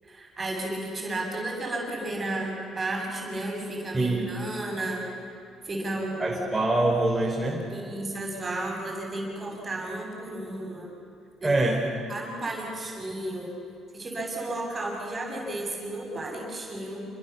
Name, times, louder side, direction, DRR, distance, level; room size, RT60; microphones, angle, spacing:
voice 1, 0.0-5.0 5.6-6.4 7.7-10.9 11.4-11.5 12.1-13.5 13.9-17.1, right 2 dB, 30° right, 0 dB, 7.4 m, -33 dB
voice 2, 3.9-4.3 6.2-7.6 11.4-11.9, right 2 dB, 15° right, -2 dB, 4.5 m, -24 dB
28.0 x 22.0 x 7.2 m, 2.6 s
supercardioid pair, 75°, 0 cm